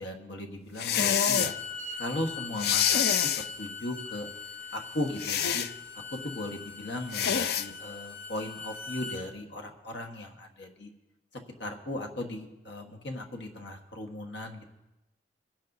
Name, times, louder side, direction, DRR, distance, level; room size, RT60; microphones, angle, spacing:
voice 1, 0.0-1.5 2.0-4.3 4.7-5.7 6.1-10.9 11.6-14.7, left 1 dB, 75° left, 3 dB, 1.4 m, -37 dB
sound 1, 0.8-1.5 2.6-3.5 5.2-5.7 7.1-7.7, left 8 dB, 60° left, 0.4 m, -26 dB
Bowed string instrument, 1.2-9.2, left 4 dB, 35° left, 1.0 m, -41 dB
22.5 x 10.5 x 2.7 m, 0.98 s
head